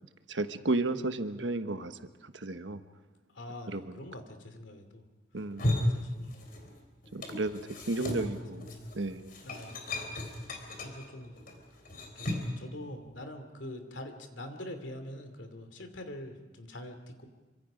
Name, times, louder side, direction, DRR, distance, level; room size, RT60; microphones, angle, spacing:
voice 1, 0.3-2.8 3.7-3.9 5.3-5.9 7.1-9.3, right 2 dB, 75° right, 9 dB, 1.2 m, -33 dB
voice 2, 3.3-5.0 5.8-6.3 7.7-8.9 9.4-9.8 10.8-11.3 12.1-17.3, left 1 dB, 80° left, 7 dB, 2.8 m, -44 dB
sound 1, 5.4-6.8 7.0-12.6, left 1 dB, 50° left, 4.1 m, -35 dB
26.5 x 25.0 x 5.1 m, 1.2 s
head